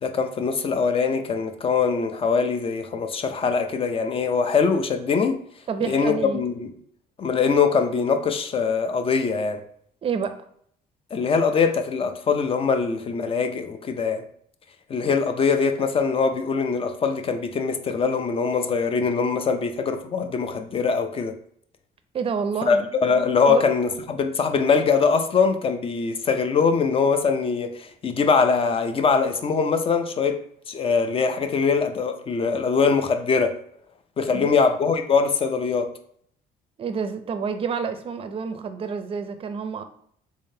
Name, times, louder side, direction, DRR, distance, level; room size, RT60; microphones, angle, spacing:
voice 1, 0.0-5.4 5.9-6.7 7.2-9.6 11.1-14.2 14.9-21.3 22.7-30.4 30.7-33.6 34.2-35.9, left 5 dB, 35° left, 0.5 m, -22 dB
voice 2, 5.7-6.4 10.0-10.4 22.1-22.9 23.5-23.7 34.3-34.6 36.8-39.8, right 6 dB, 35° right, 0.5 m, -28 dB
3.6 x 3.4 x 2.7 m
cardioid pair, 110°, 17 cm